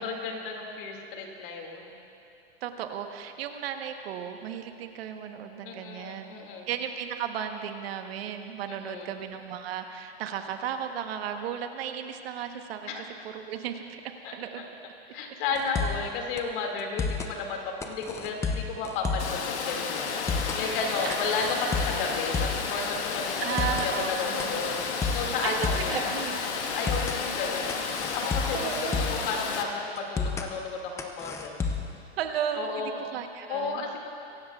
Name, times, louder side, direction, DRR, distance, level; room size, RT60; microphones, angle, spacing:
voice 1, 0.0-1.9 5.6-6.7 8.7-9.1 12.9-13.0 14.2-14.6 15.1-23.5 23.8-26.1 26.7-27.8 28.1-31.7 32.5-32.9 33.5-34.0, left 4 dB, 50° left, 1 dB, 2.3 m, -33 dB
voice 2, 2.6-14.6 21.0-21.2 23.4-24.6 25.4-25.6 25.9-26.4 27.2-27.3 28.5-29.3 32.2-34.0, right 9 dB, 60° right, 6 dB, 1.1 m, -35 dB
sound 1, 15.6-16.1 16.4-16.5 16.8-17.3 17.8-19.4 19.7-19.8 20.1-20.6 21.1-22.7 23.0-23.1 23.4-23.9 24.4-26.0 26.3-26.4 26.7-27.2 27.7-29.3 29.5-29.6 30.0-30.5 31.0-32.0, left 4 dB, 10° left, 0.5 m, -31 dB
Water, 19.2-29.6, left 5 dB, 85° left, 1.6 m, -32 dB
22.5 x 16.5 x 2.4 m, 2.6 s
supercardioid pair, 145°, 33 cm